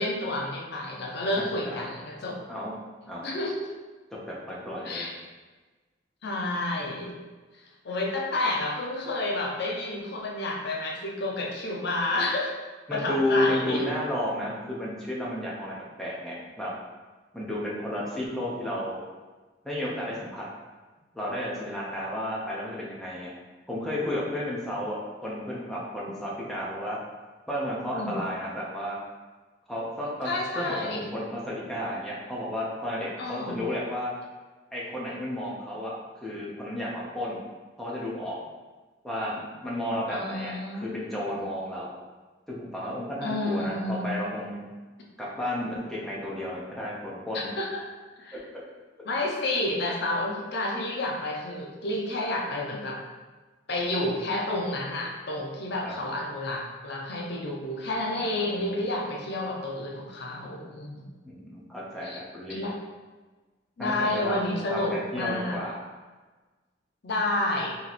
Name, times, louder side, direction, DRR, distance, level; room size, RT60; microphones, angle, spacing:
voice 1, 0.0-2.4 3.2-3.7 4.8-5.1 6.2-7.2 7.8-12.5 12.9-13.9 27.9-28.2 30.2-31.1 33.2-33.6 40.1-41.1 43.2-44.2 47.3-47.8 48.2-48.4 49.1-53.0 53.7-61.1 62.0-62.2 62.5-62.8 63.8-65.6 67.0-67.8, left 2 dB, 60° left, -1 dB, 0.6 m, -30 dB
voice 2, 1.4-1.9 2.5-2.7 3.1-3.3 4.1-5.1 12.9-16.7 17.3-19.0 19.6-20.4 21.1-23.3 23.7-27.0 27.5-29.0 29.7-34.1 34.7-35.9 36.2-37.4 37.8-38.4 39.0-41.9 42.5-44.7 45.2-47.5 55.8-55.9 58.4-58.9 61.2-62.6 63.8-65.8, left 1 dB, ahead, -6 dB, 0.7 m, -32 dB
3.0 x 2.9 x 4.0 m, 1.3 s
head